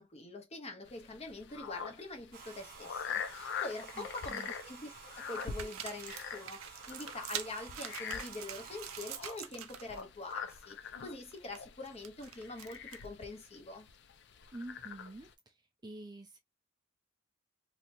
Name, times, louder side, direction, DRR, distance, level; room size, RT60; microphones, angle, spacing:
voice 1, 0.0-13.9, left 2 dB, 30° left, 0.9 m, -45 dB
sound 1, 0.9-15.3, left 6 dB, 55° left, 0.5 m, -44 dB
Domestic sounds home sounds, 2.3-9.2, right 5 dB, 45° right, 0.7 m, -51 dB
sound 2, 3.2-3.7 4.1-4.7 5.3-10.0 10.3-10.6 10.9-13.2, right 11 dB, 75° right, 0.5 m, -46 dB
voice 2, 3.9-4.5 14.5-15.5 15.8-16.4, right 2 dB, 20° right, 0.4 m, -47 dB
3.0 x 2.7 x 2.6 m
head